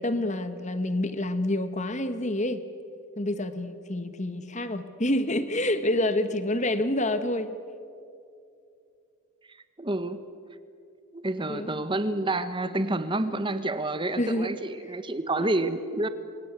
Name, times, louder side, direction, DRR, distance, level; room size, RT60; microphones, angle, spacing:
voice 1, 0.0-2.6 3.2-7.6 11.5-11.8 14.2-14.6 15.4-15.7, left 1 dB, 30° left, 11 dB, 1.3 m, -28 dB
voice 2, 9.5-10.2 11.1-16.1, right 2 dB, 20° right, 11 dB, 1.2 m, -29 dB
28.0 x 23.5 x 8.3 m, 2.6 s
head